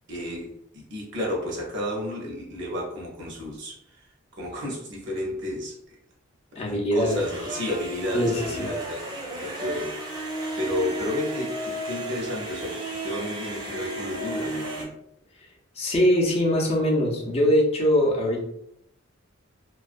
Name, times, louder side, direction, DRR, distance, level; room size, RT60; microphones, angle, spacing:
voice 1, 0.1-3.8 4.4-5.7 6.5-10.2 10.5-14.9, left 1 dB, 60° right, -2 dB, 0.8 m, -32 dB
voice 2, 6.5-7.2 8.1-8.7 15.8-18.5, equal, 30° left, -2 dB, 0.5 m, -22 dB
sound 1, 7.1-14.8, right 1 dB, 20° right, 0.6 m, -33 dB
2.3 x 2.1 x 2.4 m, 0.73 s
head